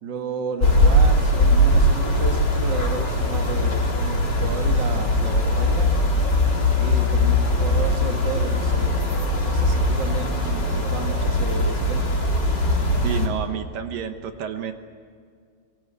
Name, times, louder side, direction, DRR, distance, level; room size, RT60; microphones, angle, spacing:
voice 1, 0.0-5.9 6.8-9.0 9.4-12.0, right 5 dB, 45° right, 5 dB, 1.5 m, -32 dB
sound 1, 0.6-13.3, left 1 dB, 30° left, 3.2 m, -20 dB
voice 2, 13.0-14.7, right 8 dB, 65° right, 7 dB, 2.6 m, -29 dB
24.0 x 22.0 x 8.2 m, 2.2 s
omnidirectional pair, 4.7 m